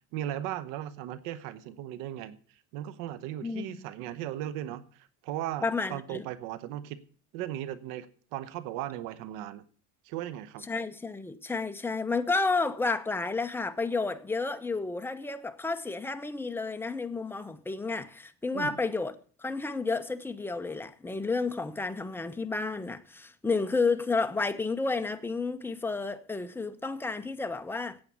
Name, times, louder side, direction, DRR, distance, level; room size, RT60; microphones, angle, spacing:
voice 1, 0.1-2.4 2.7-4.8 5.2-5.6 5.9-7.0 7.3-8.1 8.3-9.6 10.1-10.7 18.5-18.7, right 12 dB, 85° right, 1.0 m, -36 dB
voice 2, 3.4-3.9 5.6-6.3 10.7-28.0, left 3 dB, 5° left, 0.9 m, -31 dB
8.8 x 8.5 x 8.2 m
cardioid pair, 105°, 32 cm